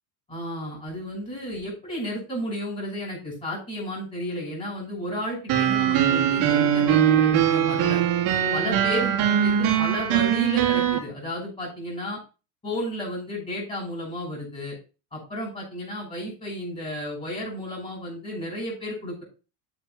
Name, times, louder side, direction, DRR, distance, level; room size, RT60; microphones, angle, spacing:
voice 1, 0.3-8.0 8.5-12.2 12.6-14.8 15.1-19.2, equal, 15° left, -4 dB, 6.4 m, -33 dB
sound 1, 5.5-11.0, right 9 dB, 50° right, 3.0 m, -21 dB
8.0 x 7.7 x 4.6 m, 0.31 s
supercardioid pair, 140°, 43 cm